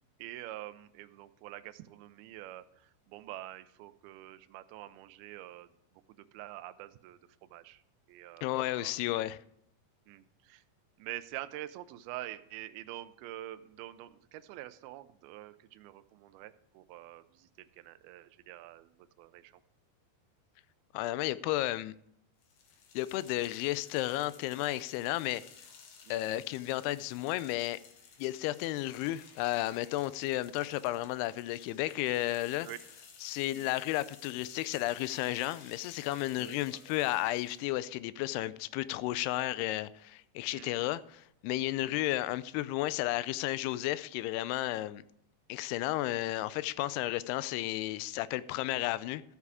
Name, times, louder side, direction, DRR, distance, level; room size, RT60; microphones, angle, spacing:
voice 1, 0.2-5.7 6.3-7.2 7.5-7.8 8.1-8.9 10.1-10.6 11.0-18.9 19.2-19.6 26.1-26.2 32.7-32.8 33.6-33.7 36.4-36.9 40.5-40.8 41.9-42.0, right 15 dB, 85° right, 2.2 m, -46 dB
voice 2, 8.4-9.4 20.9-21.9 22.9-25.4 26.1-27.8 28.2-32.7 33.2-45.0 45.5-49.2, left 16 dB, 85° left, 2.4 m, -33 dB
sound 1, 22.4-37.7, left 6 dB, 65° left, 1.7 m, -56 dB
13.5 x 8.4 x 4.8 m
omnidirectional pair, 5.0 m